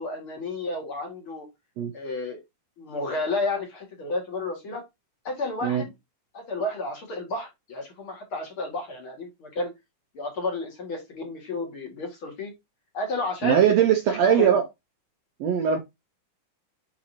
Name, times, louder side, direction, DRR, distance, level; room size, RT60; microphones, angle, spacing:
voice 1, 0.0-1.5 1.9-2.4 2.8-4.8 5.2-5.9 6.3-9.7 10.1-12.5 12.9-13.6 14.1-14.6, left 2 dB, 45° left, 2.5 m, -31 dB
voice 2, 13.4-14.7 15.4-15.8, right 9 dB, 70° right, 1.7 m, -20 dB
9.1 x 4.1 x 2.8 m
omnidirectional pair, 3.8 m